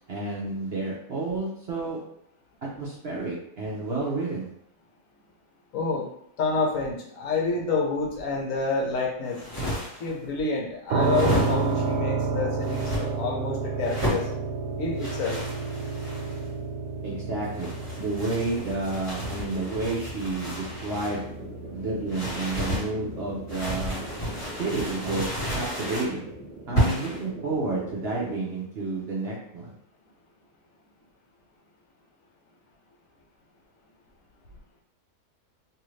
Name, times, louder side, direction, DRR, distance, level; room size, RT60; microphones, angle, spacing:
voice 1, 0.1-2.2 2.8-4.5 17.0-21.4 21.7-24.1 24.5-26.3 26.7-29.7, right 3 dB, 55° right, -5 dB, 0.7 m, -30 dB
voice 2, 5.7-6.1 6.4-9.4 9.9-14.3 14.8-15.4, left 4 dB, 65° left, -1 dB, 0.9 m, -28 dB
sound 1, 9.2-10.1 11.0-11.9 12.6-13.0 13.8-14.3 15.0-16.4 17.4-21.2 22.1-22.9 23.5-26.1 26.8-27.2, equal, 25° left, 1.3 m, -32 dB
sound 2, 10.9-25.7, right 4 dB, 85° right, 1.1 m, -32 dB
sound 3, 20.9-28.3, right 2 dB, 5° left, 0.6 m, -42 dB
2.7 x 2.5 x 3.1 m, 0.71 s
omnidirectional pair, 1.6 m